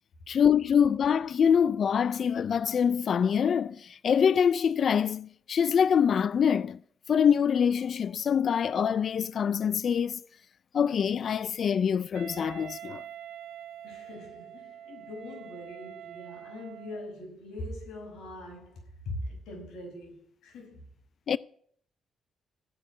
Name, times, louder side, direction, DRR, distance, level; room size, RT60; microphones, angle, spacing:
voice 1, 0.3-6.8 7.1-10.2 10.7-13.0 21.3-21.4, left 7 dB, 55° left, 0.4 m, -25 dB
Wind instrument woodwind instrument, 12.1-17.1, right 10 dB, 85° right, 1.4 m, -45 dB
voice 2, 13.8-20.9, left 1 dB, 80° left, 5.8 m, -42 dB
15.0 x 5.4 x 9.5 m
cardioid pair, 90°, 0 cm